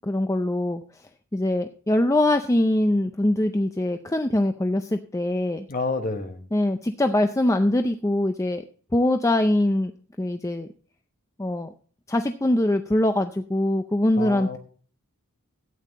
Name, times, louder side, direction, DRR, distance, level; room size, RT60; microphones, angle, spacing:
voice 1, 0.0-0.8 1.3-5.7 6.5-8.6 8.9-9.9 10.2-10.7 11.4-11.7 12.1-14.6, left 1 dB, 15° left, 7 dB, 0.4 m, -23 dB
voice 2, 5.7-6.4 14.2-14.6, left 3 dB, 40° left, 6 dB, 1.3 m, -28 dB
12.5 x 8.7 x 4.1 m, 0.43 s
head